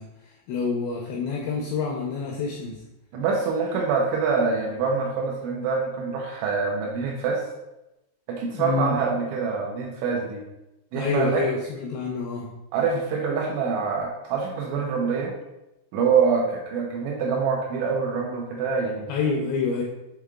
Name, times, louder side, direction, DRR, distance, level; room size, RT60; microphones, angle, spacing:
voice 1, 0.0-2.8 8.5-9.0 11.0-12.5 19.1-19.8, left 4 dB, 85° left, -2 dB, 2.5 m, -27 dB
voice 2, 3.1-7.4 8.3-10.4 10.9-11.5 12.7-15.3 15.9-19.1, right 5 dB, 80° right, 0 dB, 2.9 m, -25 dB
7.5 x 3.5 x 3.6 m, 0.94 s
omnidirectional pair, 5.7 m